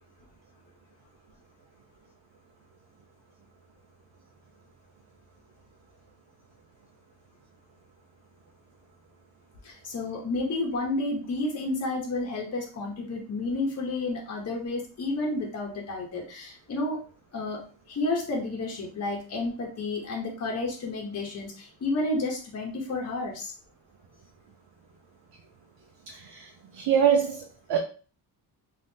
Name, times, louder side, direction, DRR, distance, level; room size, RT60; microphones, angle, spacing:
voice 1, 9.6-17.0 17.3-17.6 17.9-23.5, left 2 dB, 40° left, 0.7 m, -31 dB
voice 2, 26.1-27.8, right 8 dB, 80° right, 0.6 m, -25 dB
3.4 x 2.4 x 2.6 m
wide cardioid pair, 130°, 39 cm